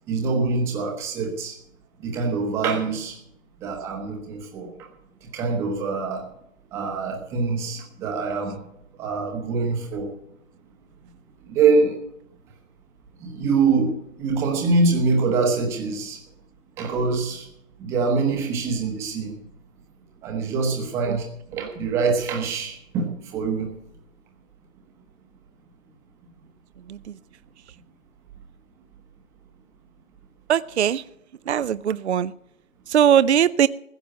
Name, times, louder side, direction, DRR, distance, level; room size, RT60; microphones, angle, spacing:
voice 1, 0.1-1.5 2.0-3.1 3.6-4.7 5.3-6.2 6.7-8.5 9.0-10.1 11.5-12.0 13.2-13.9 14.2-16.2 16.8-17.5 17.8-19.3 20.2-21.3 21.5-23.1 23.3-23.7, right 4 dB, 5° right, 1 dB, 1.2 m, -24 dB
voice 2, 30.5-31.0 31.5-32.3 32.9-33.7, right 9 dB, 55° right, 17 dB, 0.5 m, -20 dB
15.0 x 7.4 x 7.8 m, 0.76 s
hypercardioid pair, 160°, 40 cm